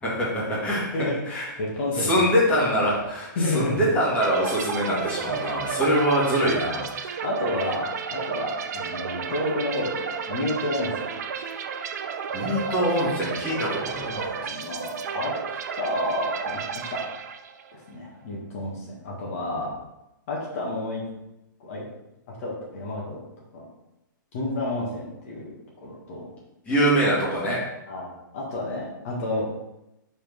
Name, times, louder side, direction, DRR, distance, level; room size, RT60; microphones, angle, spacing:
voice 1, 0.0-0.8 1.2-1.4 1.9-7.1 12.3-14.5 26.7-27.6, equal, 10° left, -8 dB, 2.0 m, -24 dB
voice 2, 0.9-2.3 3.4-3.9 6.4-6.6 7.2-11.1 13.9-15.3 15.8-16.6 16.9-17.0 17.7-19.7 20.3-21.0 21.6-21.9 22.4-23.2 23.5-23.7 24.3-25.5 25.8-26.3 27.9-29.5, left 1 dB, 40° left, -4 dB, 1.8 m, -30 dB
sound 1, 4.2-17.8, right 6 dB, 55° right, 0.6 m, -32 dB
5.3 x 4.4 x 5.3 m, 0.90 s
hypercardioid pair, 160°, 11 cm